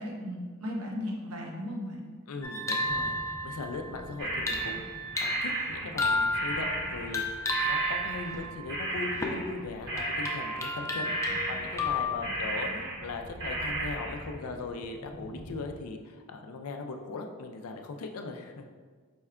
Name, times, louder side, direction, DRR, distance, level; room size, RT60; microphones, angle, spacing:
voice 1, 0.0-2.1 11.3-11.6 12.2-12.4 12.6-12.8, left 1 dB, 85° right, -2 dB, 0.9 m, -37 dB
voice 2, 2.3-3.2 3.4-11.1 11.5-18.9, left 3 dB, 90° left, 4 dB, 0.4 m, -39 dB
sound 1, 2.4-9.5 10.0-12.1, left 1 dB, 15° left, 0.4 m, -32 dB
sound 2, 2.8-15.7, equal, 35° left, 0.8 m, -47 dB
sound 3, 4.2-7.2 7.5-8.4 8.7-9.6 9.9-14.3, right 1 dB, 55° right, 1.0 m, -35 dB
5.2 x 2.2 x 3.6 m, 1.5 s
head